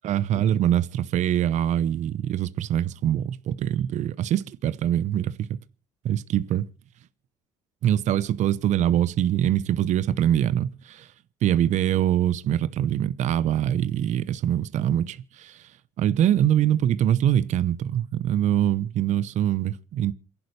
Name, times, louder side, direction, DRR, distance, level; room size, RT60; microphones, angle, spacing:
voice 1, 0.0-5.5 6.0-6.7 7.8-11.1 11.4-15.7 16.0-20.1, right 11 dB, 60° right, 0.8 m, -24 dB
28.0 x 11.0 x 3.3 m
supercardioid pair, 90°, 14 cm